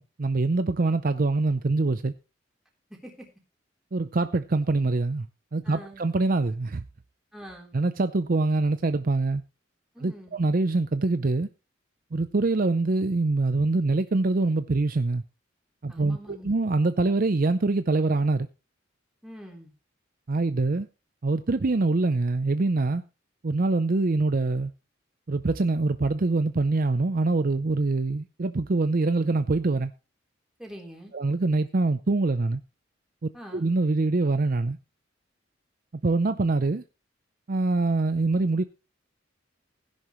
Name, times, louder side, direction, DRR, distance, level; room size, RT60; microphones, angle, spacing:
voice 1, 0.0-2.1 3.9-5.3 5.5-6.8 7.7-9.4 10.0-11.5 12.1-15.2 15.8-18.5 20.3-20.9 21.2-23.0 23.4-24.7 25.3-29.9 31.1-32.6 33.5-34.8 36.0-36.8 37.5-38.6, right 3 dB, 45° right, 0.5 m, -24 dB
voice 2, 5.6-6.0 7.3-7.8 9.9-10.4 15.9-16.5 19.2-19.7 30.6-31.1 33.3-33.7, equal, ahead, 3.7 m, -44 dB
16.5 x 10.5 x 3.1 m
head